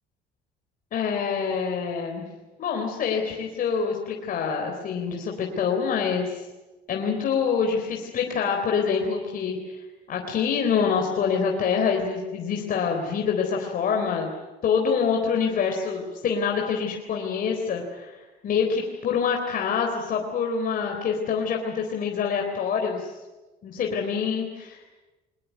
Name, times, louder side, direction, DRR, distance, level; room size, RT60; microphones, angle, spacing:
voice 1, 0.9-2.2 2.6-6.4 6.9-9.8 10.1-14.3 14.6-23.1 23.6-24.8, left 6 dB, 55° left, 1 dB, 3.9 m, -26 dB
23.0 x 21.0 x 9.6 m, 1.1 s
cardioid pair, 110°, 17 cm